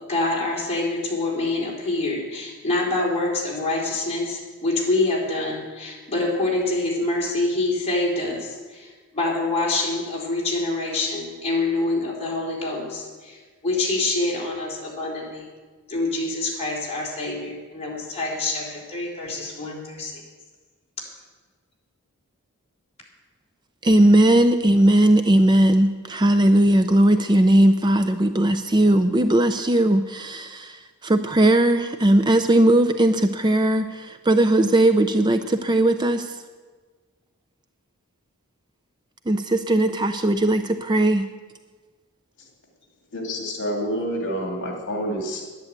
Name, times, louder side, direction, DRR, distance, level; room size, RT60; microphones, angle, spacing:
voice 1, 0.0-15.5 15.9-20.2, left 2 dB, 30° left, -4 dB, 4.0 m, -26 dB
voice 2, 23.8-36.4 39.3-41.3, right 1 dB, 20° right, 8 dB, 0.5 m, -18 dB
voice 3, 43.1-45.4, equal, 55° left, 0 dB, 2.6 m, -28 dB
11.0 x 10.5 x 8.0 m, 1.4 s
head